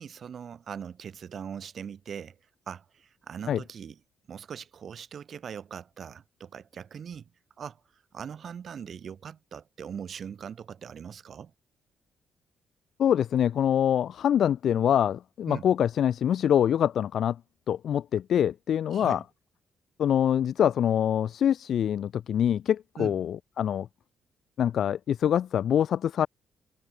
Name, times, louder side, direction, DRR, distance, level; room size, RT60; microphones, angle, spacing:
voice 1, 0.0-2.4 2.7-4.0 4.3-7.3 7.6-11.5 15.5-15.7 18.9-19.2 23.0-23.1, right 7 dB, 55° right, 1.5 m, -41 dB
voice 2, 13.0-17.4 17.7-19.2 20.0-23.9 24.6-26.3, left 9 dB, 70° left, 0.3 m, -25 dB
cardioid pair, 80°, 0 cm